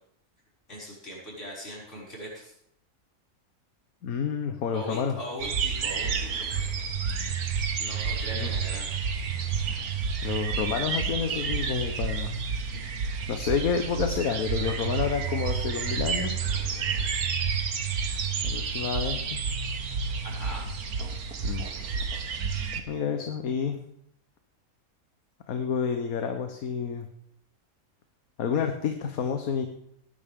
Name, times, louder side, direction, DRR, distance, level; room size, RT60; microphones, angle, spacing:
voice 1, 0.7-2.5 4.7-6.5 7.8-8.9 20.2-20.7, right 1 dB, 55° left, -6 dB, 6.4 m, -39 dB
voice 2, 4.0-5.2 8.3-8.5 10.2-12.3 13.3-16.3 18.4-19.4 21.4-21.6 22.9-23.8 25.5-27.1 28.4-29.7, left 6 dB, 75° left, 6 dB, 1.5 m, -29 dB
sound 1, 5.4-22.8, right 6 dB, 85° right, 1.7 m, -30 dB
19.5 x 10.5 x 3.7 m, 0.70 s
omnidirectional pair, 1.5 m